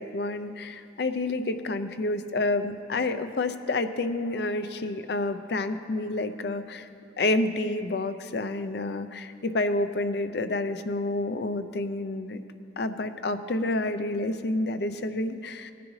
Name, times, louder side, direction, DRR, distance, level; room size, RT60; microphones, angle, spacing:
voice 1, 0.0-6.9 7.2-12.4 12.8-15.7, left 2 dB, 70° left, 10 dB, 0.5 m, -29 dB
18.0 x 10.0 x 3.2 m, 2.5 s
head